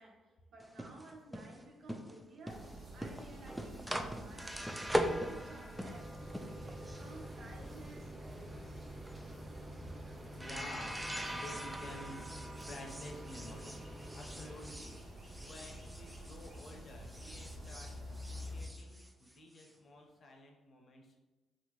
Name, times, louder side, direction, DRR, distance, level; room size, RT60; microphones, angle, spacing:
voice 1, 0.0-8.8, right 2 dB, 60° right, 0 dB, 0.8 m, -55 dB
sound 1, 0.6-16.8 17.1-19.7, equal, 5° right, 0.3 m, -42 dB
sound 2, 2.5-18.7, equal, 40° right, 1.5 m, -50 dB
voice 2, 9.8-13.9 14.1-15.0 15.3-21.2, left 1 dB, 50° left, 1 dB, 0.8 m, -52 dB
4.1 x 2.5 x 3.0 m, 1.1 s
cardioid pair, 90°, 0 cm